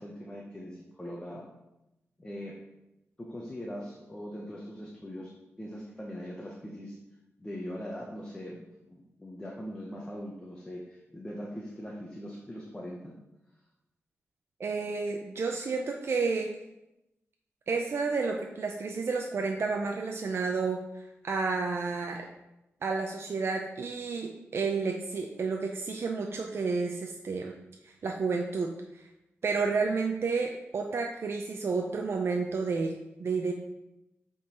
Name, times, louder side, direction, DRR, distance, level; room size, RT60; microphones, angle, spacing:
voice 1, 0.0-1.5 2.2-2.6 3.2-5.3 5.6-7.0 7.4-13.1, equal, 15° left, -2 dB, 0.9 m, -41 dB
voice 2, 14.6-16.5 17.7-22.3 22.8-27.5 27.8-29.0 29.4-32.9 33.2-33.5, right 4 dB, 55° right, 2 dB, 0.5 m, -31 dB
7.7 x 3.8 x 4.2 m, 0.93 s
wide cardioid pair, 145°, 5 cm